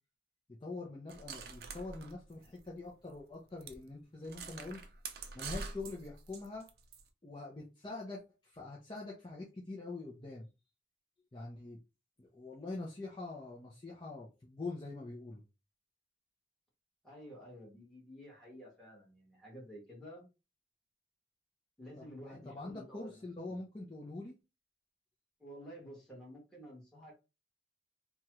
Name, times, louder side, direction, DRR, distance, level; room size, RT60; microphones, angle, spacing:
voice 1, 0.6-4.8 5.3-6.7 7.2-10.5 11.3-11.8 12.2-15.4 22.0-24.4, left 3 dB, 25° left, -3 dB, 0.5 m, -44 dB
sound 1, 1.1-2.9 3.2-3.3 3.6-3.8 4.2-7.0, right 4 dB, 55° right, 0.4 m, -45 dB
voice 2, 17.0-20.2 21.8-23.2 23.5-23.6 25.4-27.2, equal, 5° left, -4 dB, 1.4 m, -51 dB
3.0 x 2.3 x 3.0 m, 0.28 s
head